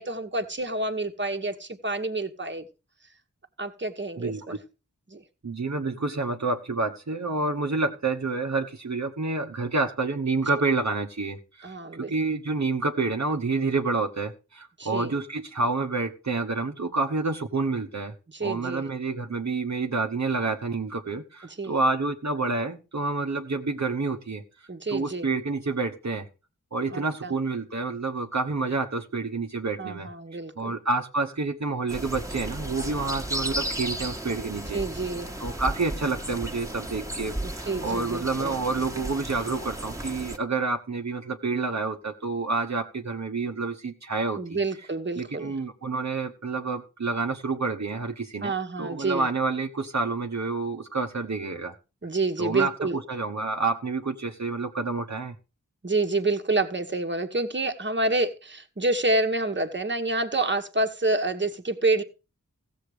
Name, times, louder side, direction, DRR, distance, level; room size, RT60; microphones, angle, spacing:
voice 1, 0.0-2.7 3.6-4.6 5.1-5.2 11.6-12.2 14.8-15.1 18.3-18.8 21.6-21.7 24.7-25.3 26.9-27.3 29.8-30.7 34.7-35.3 37.4-38.5 44.4-45.5 48.4-49.3 52.0-53.0 55.8-62.0, right 2 dB, 35° right, 6 dB, 1.4 m, -28 dB
voice 2, 4.2-4.6 5.4-18.1 18.4-24.4 24.9-26.3 26.7-30.1 30.6-34.8 35.4-44.6 45.2-51.8 52.4-55.3, right 3 dB, 60° right, 3 dB, 1.1 m, -28 dB
sound 1, 31.9-40.4, right 1 dB, 10° right, 1.5 m, -34 dB
15.5 x 7.5 x 4.9 m, 0.32 s
wide cardioid pair, 70°, 32 cm